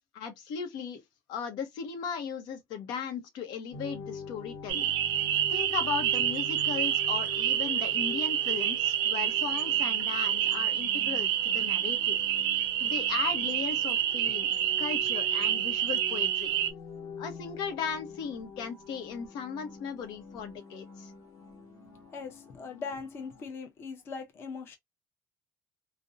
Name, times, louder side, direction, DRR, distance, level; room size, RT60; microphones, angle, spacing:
voice 1, 0.1-1.0 1.3-4.9 5.5-12.2 12.6-16.5 17.2-21.1, left 6 dB, 85° left, 0.7 m, -37 dB
sound 1, 3.7-23.4, left 4 dB, 50° left, 1.0 m, -46 dB
sound 2, 4.7-16.7, right 11 dB, 80° right, 0.4 m, -28 dB
voice 2, 22.1-24.8, left 5 dB, 35° left, 0.5 m, -40 dB
2.5 x 2.0 x 2.5 m
cardioid pair, 180°, 7 cm